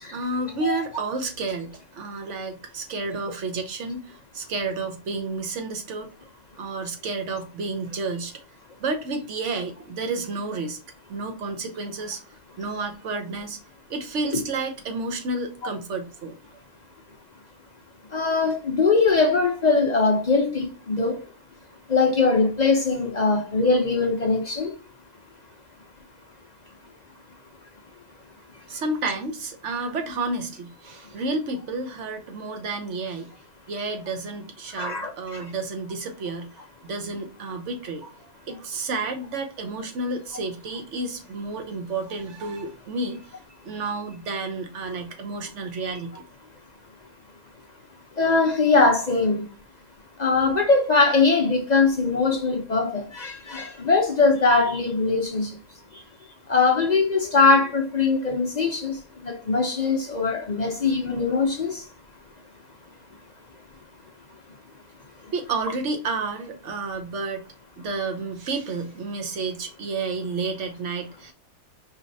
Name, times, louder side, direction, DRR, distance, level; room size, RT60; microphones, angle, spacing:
voice 1, 0.1-6.1 6.6-8.3 8.8-10.8 11.1-12.2 12.6-13.6 13.9-16.4 28.7-33.3 33.7-36.5 36.8-38.0 38.5-43.2 43.6-46.2 65.3-67.4 67.8-71.3, right 3 dB, 60° right, 1.1 m, -30 dB
voice 2, 18.1-21.2 21.9-24.7 34.8-35.5 48.2-49.5 50.2-55.6 55.9-56.0 56.5-61.8, left 4 dB, 45° left, 0.5 m, -21 dB
4.8 x 3.1 x 2.6 m
omnidirectional pair, 1.5 m